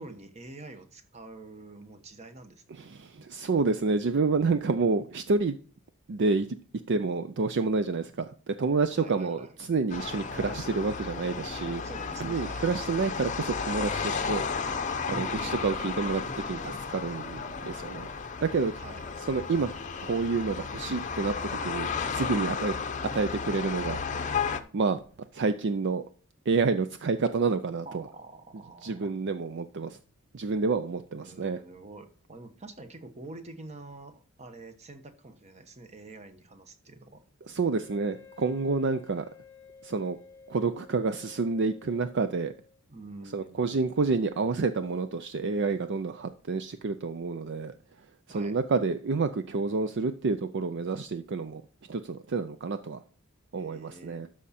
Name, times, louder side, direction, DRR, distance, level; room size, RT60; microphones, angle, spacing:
voice 1, 0.0-2.9 3.2-3.3 8.9-9.6 11.8-12.7 15.1-16.0 18.8-19.1 27.8-29.1 31.2-37.2 42.9-43.9 48.3-48.6 53.5-54.2, right 2 dB, 30° right, 8 dB, 1.0 m, -46 dB
voice 2, 2.7-5.6 6.1-6.5 6.9-11.8 12.2-14.8 15.1-18.1 18.4-18.8 19.3-19.7 20.0-22.7 23.1-24.3 24.7-25.0 25.3-26.0 26.5-28.0 28.8-30.0 30.3-31.6 37.5-39.3 39.8-40.2 40.5-42.5 43.3-47.7 48.3-51.6 51.9-53.0 53.5-54.3, right 4 dB, 55° right, 10 dB, 0.5 m, -29 dB
sound 1, 9.9-24.6, left 5 dB, 35° left, 0.7 m, -33 dB
Wind instrument woodwind instrument, 37.7-42.8, left 5 dB, 10° left, 1.3 m, -53 dB
13.0 x 4.9 x 4.2 m, 0.42 s
head